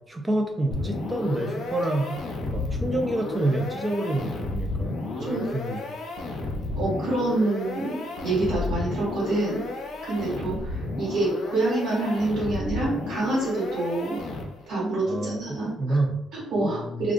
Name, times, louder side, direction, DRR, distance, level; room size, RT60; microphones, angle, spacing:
voice 1, 0.1-2.2 2.5-5.8 15.1-16.2 16.6-17.1, right 1 dB, 20° right, 4 dB, 0.6 m, -28 dB
sound 1, 0.7-14.8, left 2 dB, 70° left, 0.5 m, -32 dB
voice 2, 6.7-9.6 10.0-14.2 14.7-16.0 16.3-17.1, right 2 dB, 85° right, -8 dB, 1.4 m, -27 dB
2.4 x 2.4 x 3.6 m, 0.78 s
cardioid pair, 90°, 0 cm